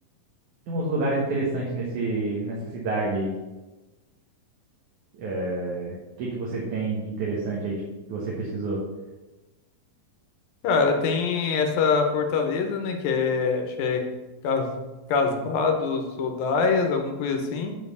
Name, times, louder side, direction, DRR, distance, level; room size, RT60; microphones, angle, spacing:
voice 1, 0.7-3.3 5.1-7.8 8.1-8.8, right 2 dB, 65° right, -4 dB, 2.8 m, -28 dB
voice 2, 10.6-14.0 14.4-14.7 15.1-17.8, left 5 dB, 85° left, 4 dB, 2.8 m, -24 dB
9.5 x 4.4 x 7.0 m, 1.1 s
omnidirectional pair, 4.1 m